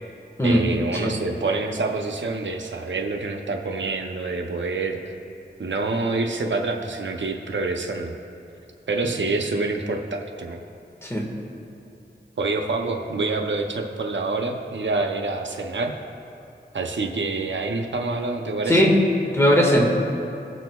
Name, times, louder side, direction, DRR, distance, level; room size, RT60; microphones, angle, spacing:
voice 1, 0.4-5.0 5.6-8.2 8.9-10.6 12.4-15.9 16.7-18.9, right 3 dB, 80° right, 3 dB, 0.6 m, -27 dB
voice 2, 19.4-20.0, equal, 15° left, -2 dB, 1.5 m, -18 dB
16.5 x 6.2 x 2.3 m, 2.7 s
wide cardioid pair, 55°, 19 cm